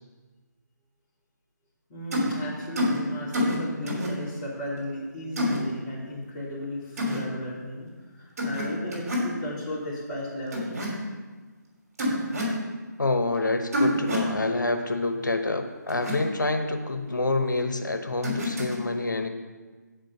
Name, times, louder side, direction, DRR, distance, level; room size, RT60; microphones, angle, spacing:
voice 1, 1.9-7.9 8.2-10.9, left 1 dB, 20° left, -8 dB, 2.7 m, -35 dB
sound 1, 2.1-2.3 2.8-3.0 3.3-3.6 3.9-4.1 5.4-5.6 7.0-7.2 8.4-8.6 8.9-9.3 10.5-10.9 12.0-12.5 13.7-14.3 15.9-16.1 18.2-18.8, left 1 dB, 50° right, 3.3 m, -26 dB
voice 2, 13.0-19.3, left 2 dB, 80° left, 6 dB, 1.0 m, -27 dB
9.5 x 5.0 x 6.5 m, 1.3 s
figure-of-eight pair, 155°, 10 cm